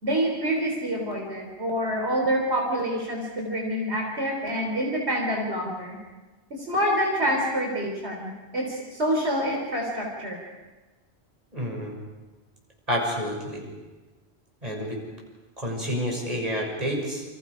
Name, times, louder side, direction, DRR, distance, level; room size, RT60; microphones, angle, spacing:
voice 1, 0.0-6.0 6.5-10.4, equal, 75° right, 0 dB, 3.8 m, -27 dB
voice 2, 11.5-11.9 12.9-13.6 14.6-15.0 15.6-17.2, equal, 35° right, -1 dB, 6.6 m, -29 dB
28.5 x 26.5 x 5.0 m, 1.2 s
omnidirectional pair, 1.1 m